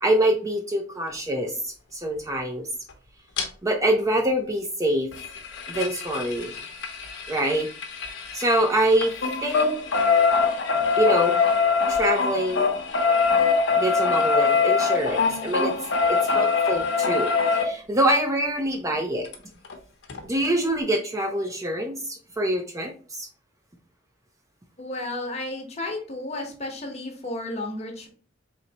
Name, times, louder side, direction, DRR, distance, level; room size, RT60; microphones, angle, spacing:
voice 1, 0.0-2.7 3.6-5.1 5.7-6.5 7.3-7.7 8.3-9.1 9.4-9.8 11.0-11.4 11.9-12.7 13.8-15.7 16.1-19.3 20.2-23.3, right 1 dB, 15° right, 4 dB, 0.4 m, -25 dB
sound 1, 3.4-3.5 5.1-8.6 8.9-17.6 19.3-19.4 19.7-19.8 20.1-20.2, left 5 dB, 70° left, 0.7 m, -22 dB
voice 2, 24.8-28.1, left 2 dB, 35° left, 1 dB, 1.0 m, -33 dB
4.0 x 3.1 x 2.8 m, 0.40 s
head